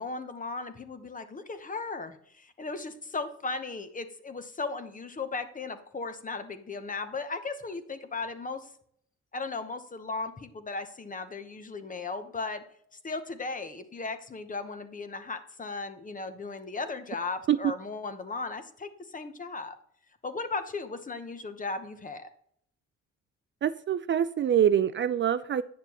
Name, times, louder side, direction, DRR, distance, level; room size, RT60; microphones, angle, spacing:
voice 1, 0.0-8.7 9.3-12.6 13.0-19.7 20.2-22.3, left 3 dB, 25° left, 9 dB, 0.9 m, -36 dB
voice 2, 23.6-25.6, right 9 dB, 40° right, 13 dB, 0.4 m, -25 dB
9.4 x 6.7 x 2.9 m, 0.66 s
cardioid pair, 90°, 30 cm